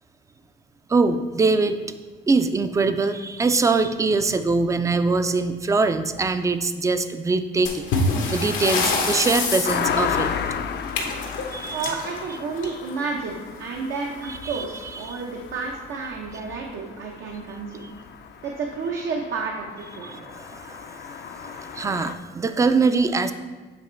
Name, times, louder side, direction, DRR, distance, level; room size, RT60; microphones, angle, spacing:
voice 1, 0.9-1.9 2.3-7.9 8.3-10.3 11.5-12.0 14.4-14.6 15.0-15.2 17.8-17.9 20.0-23.3, right 3 dB, 15° right, 10 dB, 0.3 m, -23 dB
sound 1, 7.7-13.0 14.3-14.5 14.8-14.9 15.5-15.6 16.3-16.6, left 3 dB, 85° left, 1.0 m, -27 dB
sound 2, 9.6-22.1, left 7 dB, 55° left, 0.5 m, -34 dB
voice 2, 11.7-17.9 18.4-20.2, right 4 dB, 75° right, 0 dB, 0.7 m, -31 dB
7.8 x 3.0 x 4.3 m, 1.3 s
cardioid pair, 90°, 20 cm